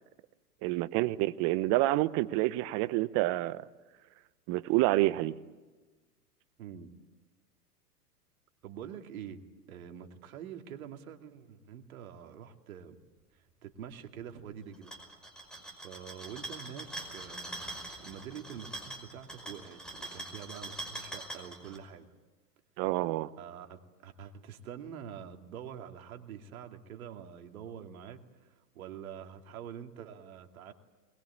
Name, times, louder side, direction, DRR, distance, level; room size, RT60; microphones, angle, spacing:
voice 1, 0.6-3.7 4.5-5.4 22.8-23.3, right 18 dB, 35° right, 16 dB, 0.9 m, -28 dB
voice 2, 6.6-6.9 8.6-9.4 9.7-13.0 13.3-14.9 15.8-17.7 18.0-22.1 23.4-30.7, right 8 dB, 60° right, 5 dB, 2.6 m, -46 dB
sound 1, 14.7-21.8, right 1 dB, ahead, 5.4 m, -43 dB
22.5 x 21.0 x 8.7 m, 1.3 s
hypercardioid pair, 120°, 47 cm